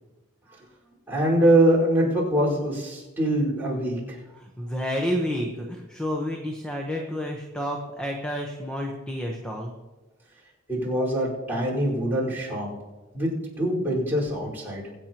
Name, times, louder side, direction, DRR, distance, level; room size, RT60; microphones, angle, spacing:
voice 1, 1.1-4.2 10.7-12.7 13.1-14.8, right 1 dB, 10° right, -7 dB, 4.9 m, -23 dB
voice 2, 4.3-9.7, equal, 5° left, 1 dB, 1.1 m, -30 dB
24.0 x 8.6 x 3.0 m, 1.1 s
head